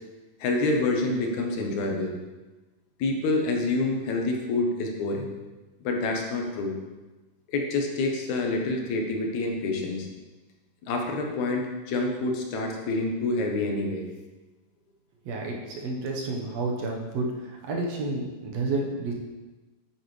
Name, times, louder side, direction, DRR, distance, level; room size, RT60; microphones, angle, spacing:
voice 1, 0.4-2.2 3.0-5.3 5.8-6.7 7.5-10.1 10.9-14.0, left 2 dB, 70° left, 2 dB, 2.2 m, -27 dB
voice 2, 15.3-19.1, right 2 dB, 60° right, -1 dB, 2.0 m, -30 dB
9.2 x 8.8 x 3.2 m, 1.2 s
omnidirectional pair, 3.8 m